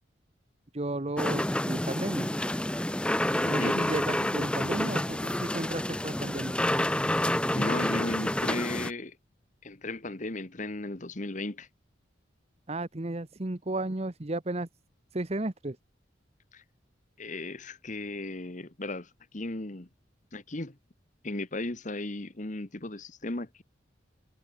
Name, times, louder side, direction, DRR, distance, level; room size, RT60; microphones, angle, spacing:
voice 1, 0.7-2.3 3.5-6.5 12.7-14.7 15.1-15.8, right 2 dB, 35° right, 1.0 m, -33 dB
sound 1, 1.2-8.9, left 1 dB, 5° left, 0.7 m, -28 dB
voice 2, 3.4-3.8 7.5-9.2 9.6-11.7 16.5-16.6 17.2-19.9 20.3-20.8 21.2-23.6, left 2 dB, 40° left, 1.4 m, -36 dB
head